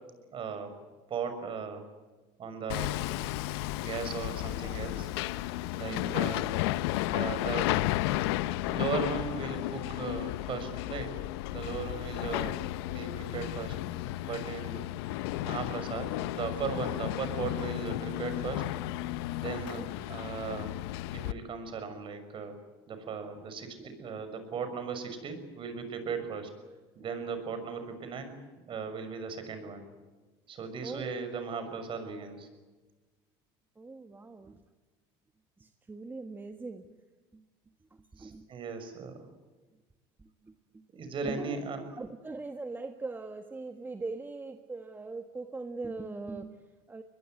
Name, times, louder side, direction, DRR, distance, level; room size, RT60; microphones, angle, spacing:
voice 1, 0.3-0.7 1.1-1.8 2.4-3.0 3.8-5.1 5.7-6.5 7.1-7.8 8.7-11.2 11.5-12.6 12.9-13.8 14.2-14.8 15.4-18.7 19.4-20.7 21.1-22.6 22.9-26.5 27.0-28.3 28.7-29.8 30.5-32.5 38.2-39.3 40.9-41.8, right 5 dB, 40° right, 9 dB, 6.3 m, -37 dB
Hammer, 2.7-21.3, left 16 dB, 85° left, 0.8 m, -33 dB
voice 2, 5.9-6.2 19.7-19.9 23.8-24.1 30.8-31.2 33.8-34.6 35.6-37.0 37.3-37.4 37.9-38.5 40.2-40.8 41.2-47.0, right 3 dB, 15° right, 7 dB, 1.5 m, -41 dB
23.0 x 21.5 x 9.5 m, 1.3 s
supercardioid pair, 110°, 13 cm